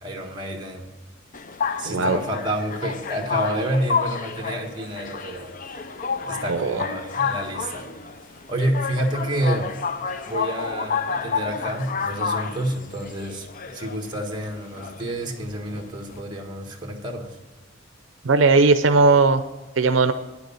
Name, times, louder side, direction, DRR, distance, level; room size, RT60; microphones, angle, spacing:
voice 1, 0.0-0.9 1.8-5.8 6.2-7.9 8.5-9.8 10.3-13.5 13.7-17.4, right 1 dB, 25° right, 2 dB, 1.5 m, -29 dB
sound 1, 1.3-16.2, left 5 dB, 40° left, 0.5 m, -30 dB
voice 2, 1.8-2.2 6.4-6.8 18.2-19.4 19.8-20.1, right 3 dB, 75° right, 9 dB, 0.6 m, -17 dB
9.6 x 6.6 x 6.9 m, 1.2 s
head